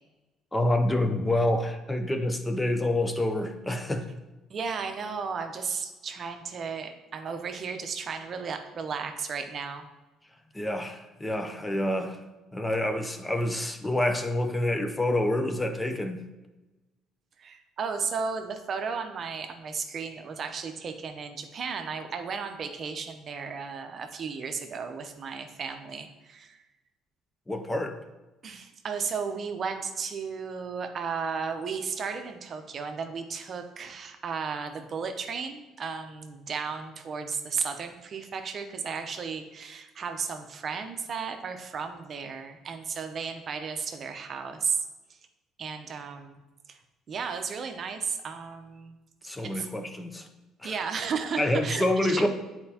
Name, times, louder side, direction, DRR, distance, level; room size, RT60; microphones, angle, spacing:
voice 1, 0.5-4.0 10.5-12.2 12.5-16.2 27.5-28.0 49.2-50.3 50.6-50.8 51.4-52.3, left 1 dB, 15° left, 6 dB, 0.6 m, -27 dB
voice 2, 4.5-9.9 17.4-26.6 28.4-44.8 45.6-46.4 46.7-46.8 47.1-48.9 49.4-49.7 50.6-52.3, right 5 dB, 45° right, 6 dB, 0.7 m, -34 dB
8.7 x 4.3 x 2.8 m, 1.1 s
cardioid pair, 90°, 0 cm